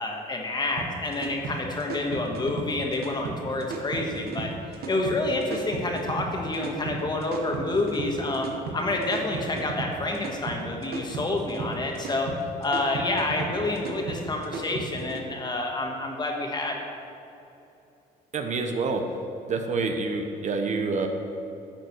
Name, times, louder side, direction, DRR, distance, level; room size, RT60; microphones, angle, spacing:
voice 1, 0.0-4.5 4.9-12.3 12.6-16.9, left 2 dB, 25° left, 1 dB, 1.4 m, -28 dB
sound 1, 0.8-15.2, right 3 dB, 65° right, 1.3 m, -35 dB
voice 2, 18.3-19.0 19.4-21.1, right 4 dB, 45° right, 5 dB, 0.9 m, -27 dB
11.5 x 6.6 x 4.6 m, 2.8 s
cardioid pair, 110°, 17 cm